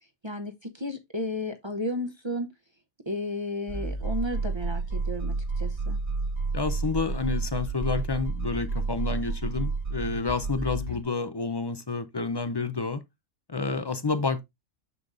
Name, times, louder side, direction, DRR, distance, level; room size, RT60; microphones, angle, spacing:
voice 1, 0.2-2.5 3.1-6.0, left 1 dB, 25° right, 0.7 m, -33 dB
sound 1, 3.7-11.0, right 3 dB, 65° right, 1.9 m, -30 dB
voice 2, 6.5-13.0 13.5-14.4, left 4 dB, 35° left, 0.4 m, -29 dB
6.9 x 6.8 x 2.5 m
omnidirectional pair, 1.2 m